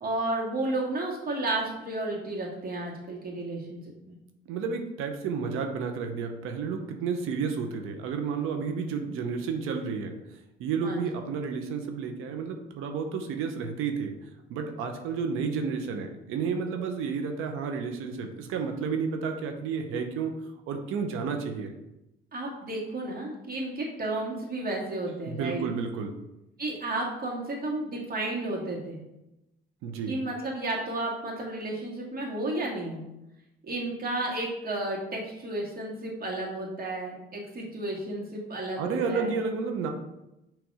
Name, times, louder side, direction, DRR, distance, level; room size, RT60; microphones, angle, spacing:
voice 1, 0.0-4.1 10.8-11.0 22.3-25.7 26.6-29.0 30.1-33.0 33.6-39.3, right 2 dB, 45° right, -3 dB, 2.1 m, -32 dB
voice 2, 4.5-10.2 10.6-14.1 14.5-20.3 20.7-21.7 25.3-26.1 29.8-30.2 38.8-39.9, right 5 dB, 80° right, 5 dB, 0.8 m, -31 dB
6.2 x 3.4 x 4.8 m, 0.92 s
supercardioid pair, 75°, 21 cm